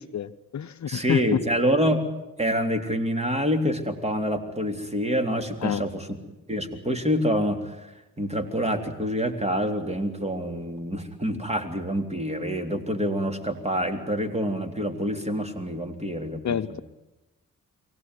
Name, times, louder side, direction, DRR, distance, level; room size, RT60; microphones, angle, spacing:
voice 1, 0.0-1.4 5.6-5.9 16.4-16.8, left 8 dB, 55° left, 10 dB, 0.9 m, -28 dB
voice 2, 0.9-2.0 2.4-6.2 6.5-16.8, equal, 20° right, 6 dB, 3.6 m, -27 dB
24.0 x 18.0 x 9.7 m, 1.0 s
cardioid pair, 65°, 34 cm